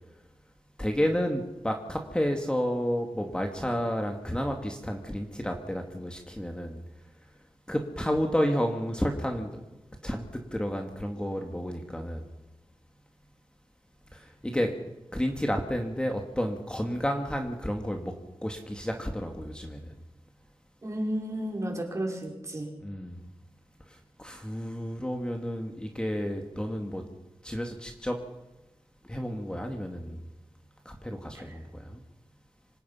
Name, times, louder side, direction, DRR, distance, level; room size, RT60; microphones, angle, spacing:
voice 1, 0.8-6.8 7.7-9.6 10.0-10.2 10.5-12.3 14.1-14.7 15.1-18.1 18.4-19.8 22.8-23.2 24.2-27.0 27.4-28.2 29.1-30.2 30.9-32.0, equal, 10° left, 3 dB, 2.2 m, -31 dB
voice 2, 20.8-22.7 31.3-31.6, right 1 dB, 35° right, 1 dB, 5.3 m, -33 dB
26.0 x 18.0 x 5.7 m, 1.0 s
wide cardioid pair, 95°, 9 cm